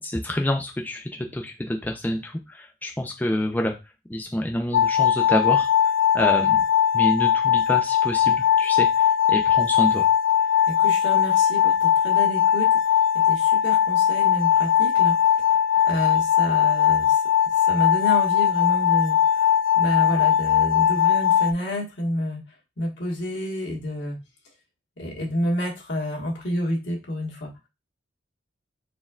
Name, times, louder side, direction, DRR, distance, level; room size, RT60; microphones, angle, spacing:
voice 1, 0.0-3.7 4.1-5.7 6.1-6.6 6.9-10.0, left 1 dB, 10° left, 2 dB, 0.4 m, -27 dB
sound 1, 4.7-21.5, left 9 dB, 85° left, 0.3 m, -20 dB
voice 2, 10.7-12.8 13.1-15.2 15.5-15.6 15.9-17.2 17.6-19.5 19.7-22.4 22.8-24.2 25.0-27.5, left 1 dB, 70° left, -2 dB, 1.4 m, -29 dB
4.2 x 3.5 x 2.3 m, 0.25 s
head